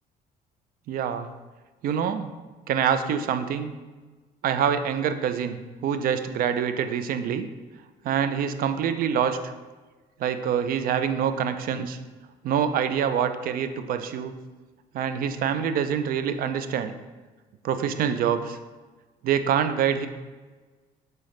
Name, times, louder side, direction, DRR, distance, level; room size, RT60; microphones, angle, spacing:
voice 1, 0.9-1.3 1.8-2.3 2.7-3.7 4.4-7.5 8.0-9.5 10.2-12.0 12.4-14.3 14.9-16.9 17.6-18.6 19.2-20.1, right 8 dB, 60° right, 10 dB, 0.4 m, -25 dB
3.9 x 3.9 x 3.1 m, 1.3 s
cardioid pair, 110°, 17 cm